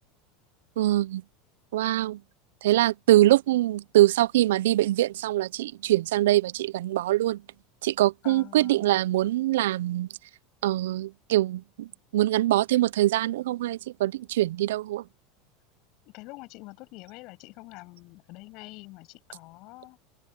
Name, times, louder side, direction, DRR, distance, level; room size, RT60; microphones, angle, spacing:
voice 1, 0.8-1.2 1.7-2.2 2.6-7.4 7.8-10.1 10.6-15.0, right 15 dB, 80° right, 0.4 m, -23 dB
voice 2, 8.2-8.9 16.1-20.0, left 23 dB, 60° left, 7.2 m, -45 dB
hypercardioid pair, 95°, 0 cm